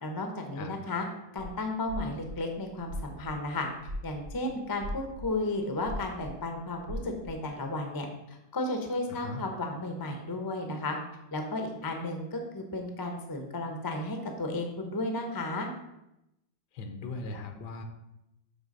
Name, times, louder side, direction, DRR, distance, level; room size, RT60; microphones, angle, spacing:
voice 1, 0.0-1.1 1.3-3.7 4.0-11.0 11.3-15.7, left 2 dB, 25° left, 4 dB, 0.5 m, -33 dB
sound 1, 1.4-1.5 1.8-4.3 4.6-5.3 5.8-7.3, equal, 90° right, 1.7 m, -39 dB
voice 2, 9.1-9.4 16.7-17.8, left 3 dB, 70° left, 6 dB, 1.4 m, -39 dB
7.9 x 3.4 x 5.3 m, 0.87 s
omnidirectional pair, 2.0 m